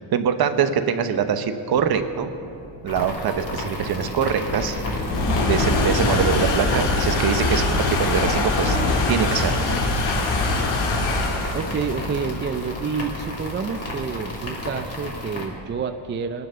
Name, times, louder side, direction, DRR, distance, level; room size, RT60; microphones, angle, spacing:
voice 1, 0.0-2.3 2.8-4.8 5.4-9.8, right 7 dB, 55° right, 8 dB, 1.1 m, -23 dB
sound 1, 2.1-15.5, left 2 dB, 70° left, 2.3 m, -24 dB
sound 2, 2.9-15.4, left 1 dB, 35° left, 3.1 m, -32 dB
voice 2, 11.5-16.5, right 5 dB, 25° right, 7 dB, 0.5 m, -28 dB
22.0 x 9.6 x 6.8 m, 2.6 s
cardioid pair, 140°, 45 cm